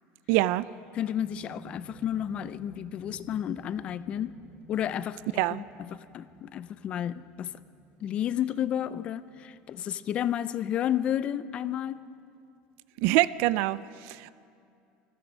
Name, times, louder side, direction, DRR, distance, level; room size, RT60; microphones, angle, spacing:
voice 1, 0.3-0.7 5.4-5.6 13.0-14.3, right 17 dB, 55° right, 18 dB, 0.3 m, -25 dB
sound 1, 0.7-12.1, right 2 dB, 30° right, 1.3 m, -54 dB
voice 2, 0.9-4.3 4.7-5.2 5.5-7.5 8.0-12.0, left 10 dB, 30° left, 15 dB, 0.4 m, -31 dB
18.5 x 14.0 x 5.2 m, 2.5 s
cardioid pair, 175°, 4 cm